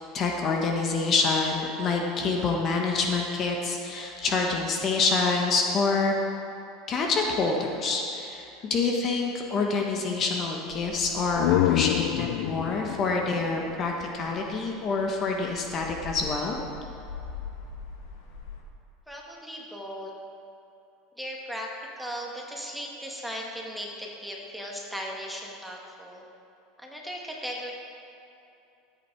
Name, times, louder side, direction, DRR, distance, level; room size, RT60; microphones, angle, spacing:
voice 1, 0.1-6.1 6.9-16.6, left 4 dB, 35° left, 1 dB, 1.2 m, -27 dB
sound 1, 10.7-18.6, left 5 dB, 80° left, 1.8 m, -44 dB
sound 2, 11.1-14.7, left 14 dB, 65° left, 0.4 m, -28 dB
voice 2, 19.1-20.1 21.2-21.7 22.0-26.2 26.8-27.7, equal, ahead, -2 dB, 1.4 m, -37 dB
14.0 x 8.3 x 4.6 m, 2.8 s
supercardioid pair, 145°, 0 cm